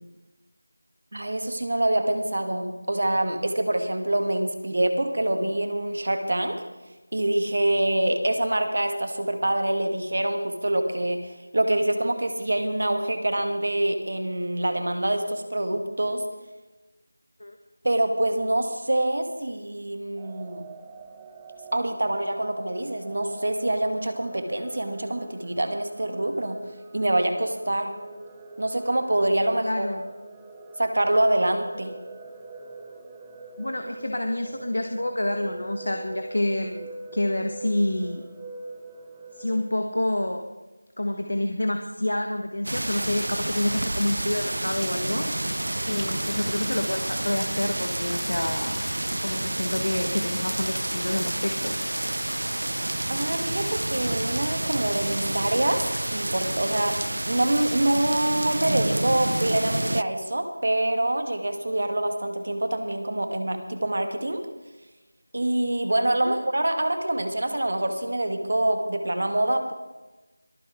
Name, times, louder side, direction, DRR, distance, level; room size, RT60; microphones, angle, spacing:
voice 1, 1.1-6.6 7.1-16.3 17.8-20.6 21.7-26.6 26.9-27.9 28.6-29.9 30.8-31.9 53.1-55.8 56.1-64.4 65.3-69.7, right 1 dB, 55° right, 6 dB, 1.9 m, -25 dB
sound 1, 20.1-39.7, right 3 dB, 5° right, 0.5 m, -43 dB
voice 2, 29.6-30.0 33.6-36.9 37.1-38.2 39.3-40.4 41.0-45.3 45.9-48.7 49.2-51.8 66.2-66.4, left 1 dB, 80° left, 5 dB, 1.4 m, -28 dB
sound 2, 42.6-60.0, right 1 dB, 75° right, 0.4 m, -29 dB
23.5 x 9.8 x 3.7 m, 1.1 s
figure-of-eight pair, 175°, 0 cm